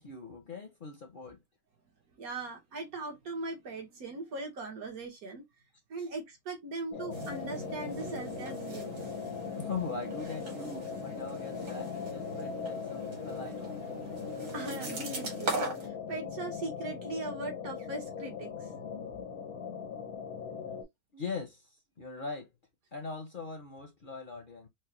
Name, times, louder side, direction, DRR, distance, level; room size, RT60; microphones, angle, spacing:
voice 1, 0.0-1.4 9.6-13.8 21.1-21.6 22.0-22.5 22.9-24.7, left 4 dB, 50° left, 0.6 m, -41 dB
voice 2, 2.2-5.4 5.9-9.0 14.5-18.5, right 2 dB, 80° right, 1.7 m, -39 dB
sound 1, 6.9-20.8, left 6 dB, 80° left, 1.6 m, -40 dB
sound 2, 7.1-15.9, right 2 dB, 65° right, 1.6 m, -40 dB
4.5 x 2.1 x 2.8 m
omnidirectional pair, 1.5 m